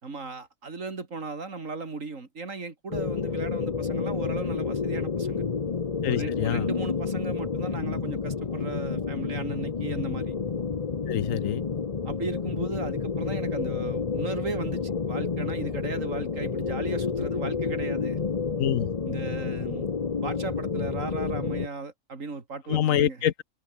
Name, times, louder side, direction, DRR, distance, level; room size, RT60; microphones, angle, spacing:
voice 1, 0.0-5.4 6.1-10.3 12.0-18.2 19.1-19.9 20.2-23.2, right 4 dB, 80° right, 3.2 m, -36 dB
sound 1, 2.9-21.7, left 5 dB, 30° left, 0.9 m, -30 dB
voice 2, 6.0-6.7 11.1-11.6 18.6-18.9 22.7-23.4, left 10 dB, 80° left, 1.2 m, -26 dB
open air
omnidirectional pair, 1.3 m